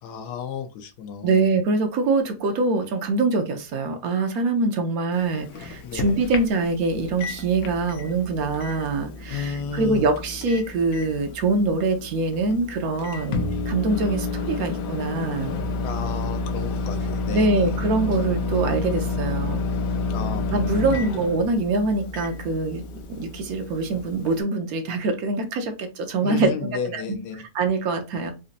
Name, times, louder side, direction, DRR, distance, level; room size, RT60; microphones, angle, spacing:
voice 1, 0.0-1.4 5.8-6.2 9.3-10.1 15.8-17.8 20.1-21.2 26.2-27.4, left 6 dB, 85° left, 1.2 m, -33 dB
voice 2, 1.2-15.5 17.3-19.6 20.5-22.8 23.2-27.0 27.5-28.3, right 3 dB, 70° right, 1.1 m, -24 dB
Microwave oven, 5.1-24.4, left 3 dB, 65° left, 1.1 m, -30 dB
4.0 x 2.6 x 2.5 m
omnidirectional pair, 1.7 m